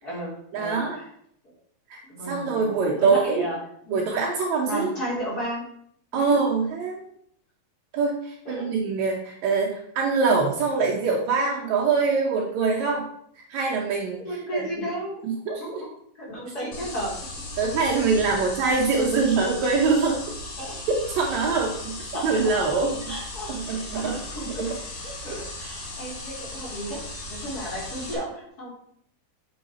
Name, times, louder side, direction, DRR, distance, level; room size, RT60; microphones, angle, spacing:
voice 1, 0.0-1.0 2.1-3.6 3.8-4.0 4.7-5.7 6.1-6.3 8.4-8.7 14.2-15.2 15.6-15.7 16.1-17.4 17.9-18.0 18.3-18.5 20.6-20.8 21.3-21.4 22.1-22.6 23.1-24.8 25.0-27.0 27.3-28.7, equal, 25° left, -5 dB, 3.2 m, -34 dB
voice 2, 0.5-1.0 1.9-2.0 2.3-3.4 3.9-4.9 6.1-7.0 7.9-13.0 13.4-14.2 14.5-14.6 15.2-15.8 17.6-20.2 20.9-23.1 23.5-24.1 24.6-24.7, right 4 dB, 70° right, -1 dB, 1.8 m, -24 dB
sound 1, 16.7-28.1, left 2 dB, 55° left, 3.0 m, -37 dB
8.3 x 5.7 x 4.3 m, 0.68 s
omnidirectional pair, 4.3 m